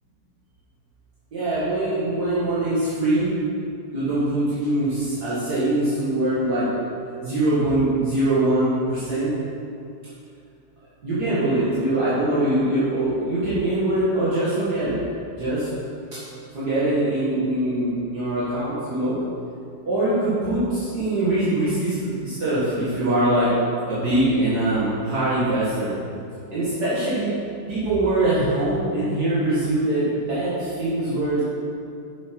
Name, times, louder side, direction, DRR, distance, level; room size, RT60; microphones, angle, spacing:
voice 1, 1.3-3.3 3.9-6.7 7.2-9.3 11.0-14.9 15.4-15.7 16.5-19.1 19.9-23.5 23.9-25.9 26.5-27.3 27.7-31.4, right 1 dB, 65° right, -12 dB, 2.7 m, -23 dB
8.6 x 7.8 x 4.8 m, 2.5 s
omnidirectional pair, 1.9 m